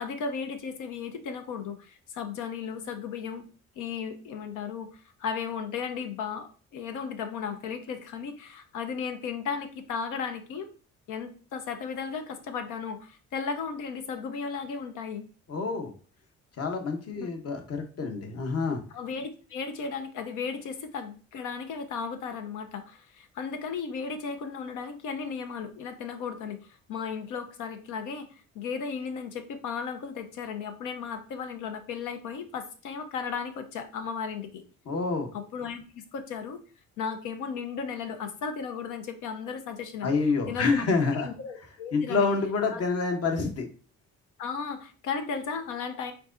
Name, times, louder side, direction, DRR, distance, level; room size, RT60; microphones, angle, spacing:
voice 1, 0.0-3.4 3.8-10.7 11.1-15.2 17.2-17.3 18.9-26.6 26.9-34.6 35.3-36.6 37.0-40.1 40.5-40.8 41.2-42.3 42.7-42.8 44.4-46.1, left 6 dB, 90° left, 8 dB, 0.8 m, -35 dB
voice 2, 15.5-15.9 16.6-18.8 34.9-35.3 40.0-41.3 41.9-43.7, left 4 dB, 55° left, 5 dB, 1.0 m, -27 dB
4.6 x 3.8 x 2.6 m, 0.38 s
cardioid pair, 90°, 30 cm